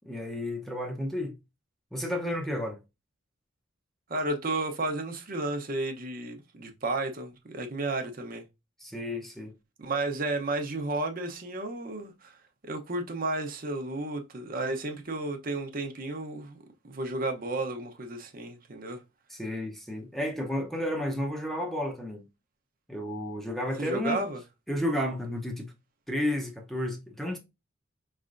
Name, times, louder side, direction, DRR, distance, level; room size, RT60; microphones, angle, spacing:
voice 1, 0.1-1.3 1.9-2.8 8.8-9.5 19.3-22.2 22.9-24.2 24.7-25.7 26.1-27.4, left 1 dB, ahead, 0.7 m, -32 dB
voice 2, 4.1-8.4 9.8-12.4 12.6-16.6 16.8-19.0 23.8-24.4, right 2 dB, 45° right, 0.8 m, -32 dB
4.8 x 3.2 x 2.5 m
head